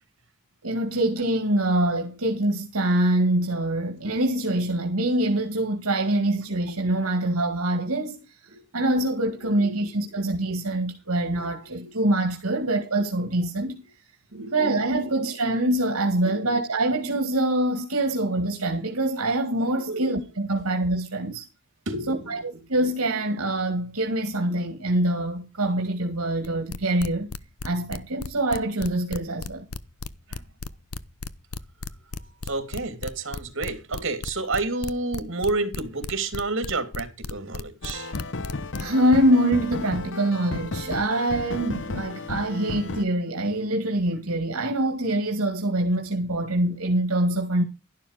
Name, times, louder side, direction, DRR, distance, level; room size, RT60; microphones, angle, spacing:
voice 1, 0.6-8.4 8.7-13.8 14.5-21.4 22.1-22.4 22.7-27.3 27.6-29.7 38.8-47.6, right 1 dB, 80° right, 2.1 m, -24 dB
voice 2, 9.0-10.5 11.6-11.9 14.3-15.3 16.2-16.5 19.9-20.1 21.8-22.7 30.3-30.4 32.1-38.2, right 2 dB, 60° right, 3.1 m, -32 dB
sound 1, 26.4-39.1, left 4 dB, 85° left, 0.9 m, -34 dB
sound 2, 37.8-43.0, left 3 dB, 60° left, 0.9 m, -33 dB
12.0 x 11.5 x 5.0 m
head